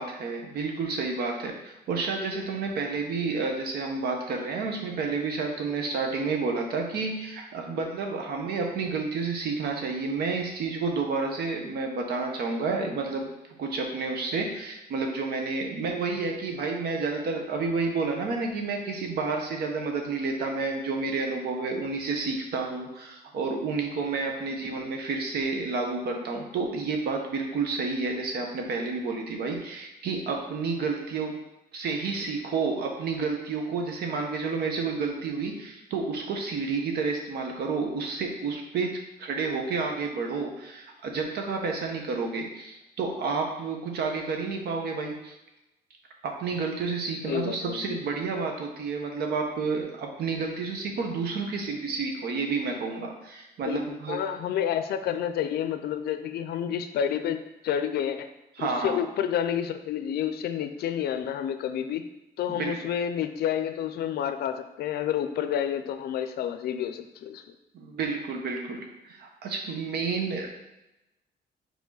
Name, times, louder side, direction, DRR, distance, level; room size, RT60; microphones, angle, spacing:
voice 1, 0.0-13.3 13.6-31.4 31.7-45.3 46.2-54.2 58.5-59.0 62.5-62.7 67.7-70.5, right 4 dB, 70° right, 2 dB, 1.2 m, -30 dB
voice 2, 47.2-48.0 53.7-53.8 54.1-58.3 58.6-62.1 62.4-67.4, left 9 dB, 70° left, 9 dB, 0.5 m, -29 dB
5.1 x 4.9 x 3.9 m, 0.93 s
cardioid pair, 145°, 17 cm